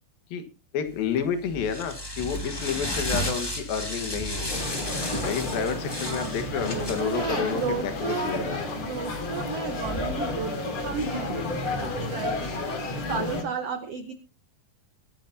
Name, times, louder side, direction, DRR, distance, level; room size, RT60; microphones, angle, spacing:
voice 1, 0.7-4.6 5.2-8.6, left 7 dB, 70° left, 8 dB, 3.3 m, -30 dB
sound 1, 1.0-13.4, equal, 15° left, 0.8 m, -35 dB
sound 2, 4.5-13.4, left 2 dB, 40° left, 2.9 m, -32 dB
voice 2, 6.0-8.3 8.6-12.6 13.1-14.1, right 6 dB, 70° right, 9 dB, 1.4 m, -33 dB
23.0 x 10.5 x 2.7 m, 0.30 s
omnidirectional pair, 4.4 m